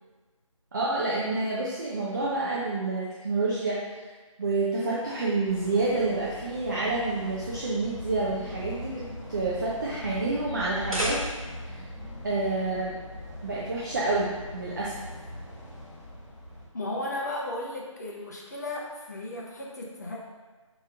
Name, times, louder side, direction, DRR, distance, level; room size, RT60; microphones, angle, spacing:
voice 1, 0.7-3.8 4.4-11.2 11.7-11.8 12.2-13.0 13.4-15.1, right 3 dB, 35° right, -6 dB, 0.6 m, -28 dB
sound 1, 5.4-16.7, left 1 dB, 5° left, 1.3 m, -41 dB
sound 2, 10.6-11.7, equal, 85° right, 0.9 m, -32 dB
voice 2, 16.7-20.2, left 2 dB, 30° left, -3 dB, 0.5 m, -35 dB
6.3 x 3.0 x 2.4 m, 1.3 s
figure-of-eight pair, 160°, 17 cm